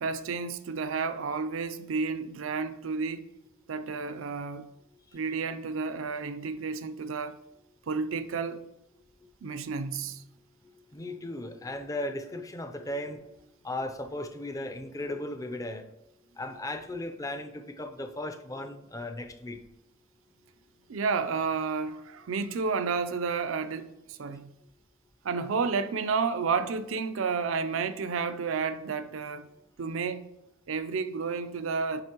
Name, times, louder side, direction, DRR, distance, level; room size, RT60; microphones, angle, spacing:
voice 1, 0.0-3.3 3.7-4.7 5.1-7.4 7.9-8.7 9.4-10.2 20.9-24.5 25.2-29.5 29.8-30.3 30.7-32.0, right 5 dB, 70° right, 0.5 m, -31 dB
voice 2, 10.9-13.2 13.6-15.9 16.4-19.6, left 1 dB, 15° left, 0.5 m, -36 dB
7.8 x 5.2 x 2.9 m
head